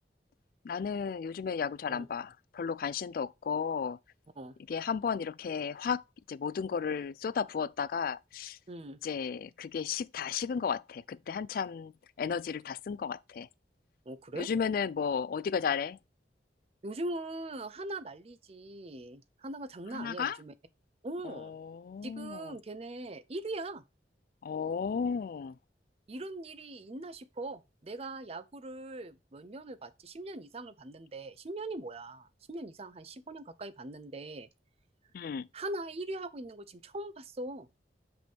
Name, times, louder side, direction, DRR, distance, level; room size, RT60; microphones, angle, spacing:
voice 1, 0.6-4.0 4.7-8.6 9.0-11.9 12.2-13.5 14.4-16.0 19.9-20.4 21.2-22.5 24.4-25.6 35.1-35.5, left 6 dB, 55° left, 0.3 m, -34 dB
voice 2, 8.7-9.0 14.1-14.5 16.8-20.5 21.0-21.6 22.0-23.8 26.1-34.5 35.5-37.7, right 2 dB, 35° right, 0.5 m, -41 dB
5.9 x 5.2 x 3.4 m
head